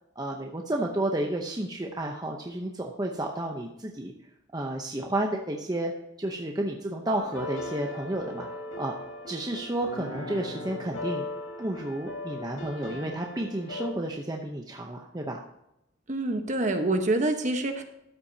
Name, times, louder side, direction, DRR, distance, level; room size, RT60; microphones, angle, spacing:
voice 1, 0.2-4.1 4.5-5.9 6.2-8.5 8.8-9.0 9.3-11.3 11.6-15.4, right 1 dB, 20° right, 1 dB, 0.8 m, -31 dB
sound 1, 7.2-13.9, left 2 dB, 85° left, 1.7 m, -38 dB
voice 2, 16.1-17.8, right 2 dB, 35° right, 5 dB, 1.1 m, -26 dB
13.5 x 8.3 x 2.8 m, 0.84 s
head